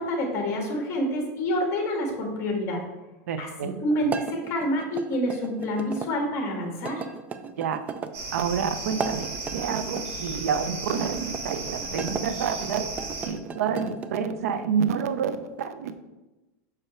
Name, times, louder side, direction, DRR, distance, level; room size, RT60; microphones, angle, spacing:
voice 1, 0.0-2.8 3.4-7.0, equal, 35° left, 2 dB, 1.7 m, -27 dB
voice 2, 3.3-3.8 7.6-7.8 8.3-12.9 13.3-15.9, right 7 dB, 90° right, 11 dB, 0.6 m, -28 dB
sound 1, 4.1-6.1 6.8-8.2 8.9-10.1 10.9-12.3 12.9-14.2, right 5 dB, 15° right, 0.3 m, -36 dB
sound 2, 8.1-13.3, right 3 dB, 70° right, 2.4 m, -35 dB
5.9 x 4.9 x 4.4 m, 1.1 s
supercardioid pair, 160°, 8 cm